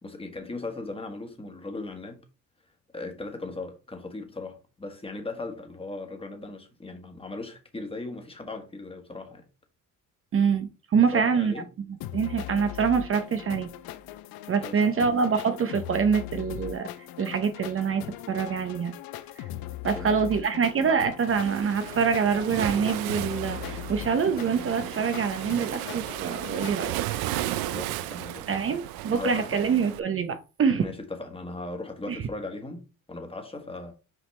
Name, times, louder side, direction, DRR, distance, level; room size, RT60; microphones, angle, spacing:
voice 1, 0.0-2.2 2.9-9.4 11.0-11.7 14.6-15.1 19.9-20.2 27.6-28.4 28.7-28.8 29.1-29.6 30.8-33.9, left 2 dB, 15° left, 1.5 m, -38 dB
voice 2, 10.3-11.5 12.1-13.7 14.5-16.9 17.2-18.9 19.8-26.9 28.5-30.9 32.1-32.2, right 6 dB, 40° right, 0.7 m, -25 dB
sound 1, 12.0-26.8, left 13 dB, 80° left, 0.6 m, -40 dB
Waves surf, 21.3-30.0, right 14 dB, 90° right, 0.5 m, -34 dB
6.1 x 4.9 x 3.2 m
cardioid pair, 110°, 35 cm